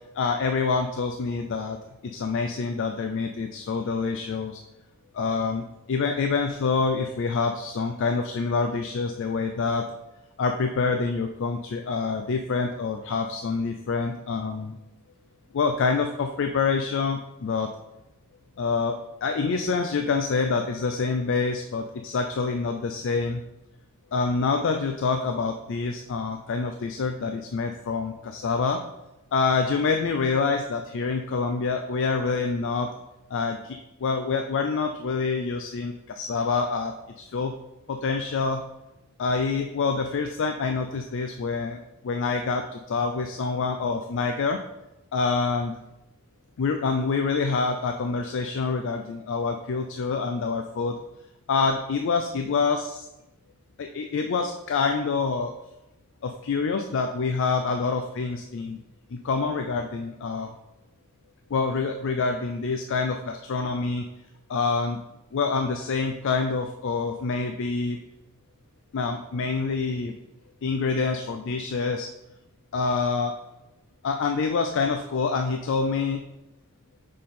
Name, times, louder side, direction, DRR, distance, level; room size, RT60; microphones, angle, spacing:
voice 1, 0.1-4.6 5.1-9.9 10.4-14.8 15.5-17.7 18.6-23.4 24.1-28.8 29.3-32.9 33.3-37.5 37.9-38.6 39.2-44.6 45.1-45.8 46.6-51.0 51.5-53.1 53.8-55.5 56.2-58.8 59.1-60.5 61.5-64.0 64.5-65.0 65.3-68.0 68.9-70.1 70.6-72.1 72.7-73.4 74.0-76.2, left 4 dB, 60° left, 5 dB, 0.4 m, -26 dB
6.4 x 3.8 x 4.2 m, 0.92 s
head